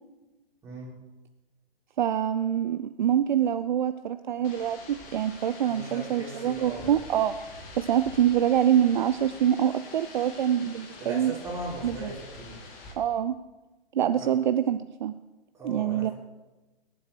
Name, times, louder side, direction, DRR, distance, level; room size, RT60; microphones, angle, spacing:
voice 1, 2.0-7.4 7.8-11.3 11.8-12.1 13.0-13.3 13.9-15.1 15.6-16.1, right 10 dB, 55° right, 11 dB, 0.7 m, -25 dB
sound 1, 4.4-12.9, left 3 dB, 30° left, 2.9 m, -46 dB
voice 2, 5.7-7.0 11.0-12.6 14.2-14.3 15.5-16.1, right 1 dB, 10° right, -6 dB, 5.9 m, -38 dB
21.5 x 11.0 x 4.5 m, 1.1 s
figure-of-eight pair, 120°, 29 cm